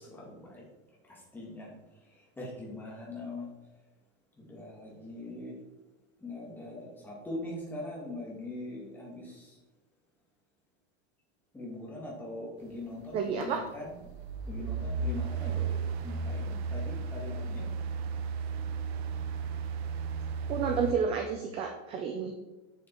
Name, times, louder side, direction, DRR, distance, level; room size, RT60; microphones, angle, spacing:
voice 1, 1.3-1.7 2.4-3.5 4.5-5.5 6.2-9.2 11.5-13.9 14.5-15.7 16.0-17.6, left 2 dB, 5° left, -4 dB, 1.7 m, -41 dB
voice 2, 13.1-13.6 20.5-22.3, right 6 dB, 20° right, 5 dB, 0.4 m, -30 dB
sound 1, 13.4-13.7 14.0-20.9, right 5 dB, 80° right, 1.0 m, -34 dB
8.2 x 7.0 x 4.4 m, 1.1 s
supercardioid pair, 180°, 31 cm